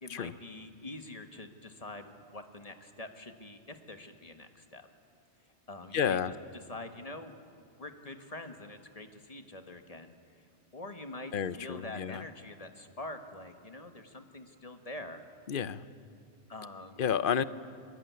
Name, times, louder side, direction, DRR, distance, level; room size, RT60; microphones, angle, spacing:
voice 1, 0.0-4.9 5.7-6.2 6.7-10.1 10.7-15.2 16.5-17.0, left 2 dB, 35° left, 6 dB, 1.6 m, -45 dB
voice 2, 5.9-6.3 11.3-12.2 15.5-15.8 17.0-17.4, left 8 dB, 55° left, 15 dB, 0.9 m, -30 dB
23.0 x 21.0 x 9.5 m, 2.4 s
omnidirectional pair, 1.2 m